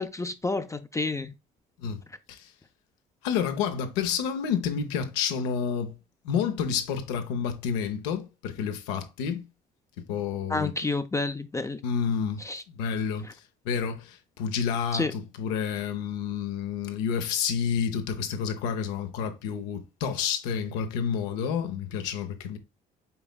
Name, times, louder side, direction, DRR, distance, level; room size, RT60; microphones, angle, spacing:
voice 1, 0.0-1.3 10.5-11.8 12.4-12.6 13.2-13.3 14.9-15.1, left 3 dB, 15° left, 0.5 m, -29 dB
voice 2, 3.2-5.9 6.2-9.4 10.1-10.7 11.8-13.3 13.6-22.6, left 7 dB, 85° left, 0.8 m, -29 dB
5.6 x 4.0 x 2.3 m
supercardioid pair, 70°, 21 cm